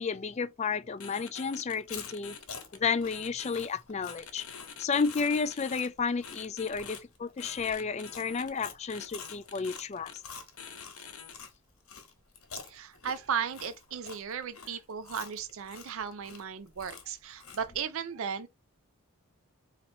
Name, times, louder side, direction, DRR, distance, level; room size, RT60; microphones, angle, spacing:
voice 1, 0.0-2.4 2.8-4.5 4.8-10.1, left 5 dB, 30° left, 0.3 m, -32 dB
sound 1, 1.0-2.8 3.1-3.7 4.1-5.9 6.2-7.0 7.4-9.8 10.1-10.2 10.6-11.3, left 7 dB, 90° left, 1.0 m, -46 dB
Chewing mastication, 1.7-11.5 11.9-17.8, left 6 dB, 75° left, 1.3 m, -47 dB
voice 2, 12.7-18.5, right 7 dB, 65° right, 0.4 m, -36 dB
4.2 x 2.9 x 2.8 m
head